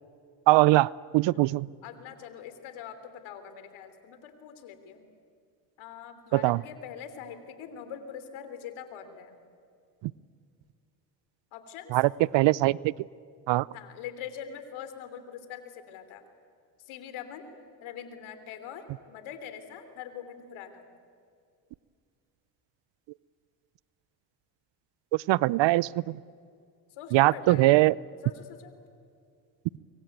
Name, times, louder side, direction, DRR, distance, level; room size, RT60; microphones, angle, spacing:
voice 1, 0.5-1.7 6.3-6.6 11.9-12.9 13.5-13.7 25.1-26.2 27.1-28.0, right 18 dB, 60° right, 23 dB, 0.7 m, -22 dB
voice 2, 1.8-5.1 5.8-9.3 11.5-11.9 13.7-16.2 16.9-17.5 17.8-20.8 26.9-27.6 28.2-28.7, left 8 dB, 75° left, 10 dB, 3.3 m, -43 dB
25.5 x 23.5 x 9.2 m, 2.3 s
supercardioid pair, 75°, 49 cm